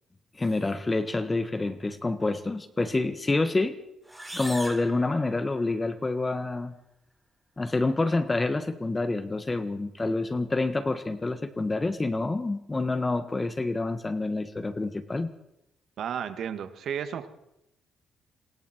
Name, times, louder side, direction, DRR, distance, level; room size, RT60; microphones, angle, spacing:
voice 1, 0.3-3.7 4.3-6.7 7.6-15.3, left 2 dB, 20° left, 11 dB, 1.6 m, -27 dB
sound 1, 4.0-5.9, right 1 dB, 5° right, 4.0 m, -41 dB
voice 2, 16.0-17.3, right 8 dB, 65° right, 10 dB, 2.2 m, -33 dB
26.5 x 22.0 x 4.7 m, 0.84 s
cardioid pair, 90°, 0 cm